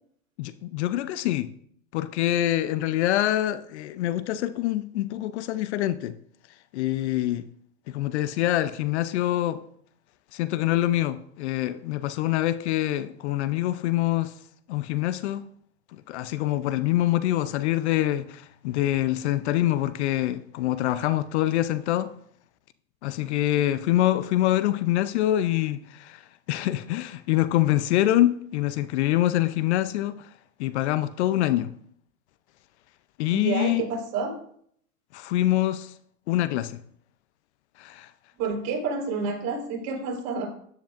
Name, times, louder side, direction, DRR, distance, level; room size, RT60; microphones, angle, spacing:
voice 1, 0.4-1.5 1.9-6.1 6.7-7.4 7.9-9.6 10.3-14.3 14.7-15.4 16.1-22.1 23.0-26.2 26.5-30.3 30.6-31.7 33.2-33.8 35.1-35.9 36.3-36.8 37.8-38.1, left 14 dB, 50° left, 0.7 m, -25 dB
voice 2, 33.3-34.3 38.4-40.5, right 4 dB, 40° right, 4.1 m, -29 dB
13.5 x 10.0 x 2.6 m
hypercardioid pair, 110°, 42 cm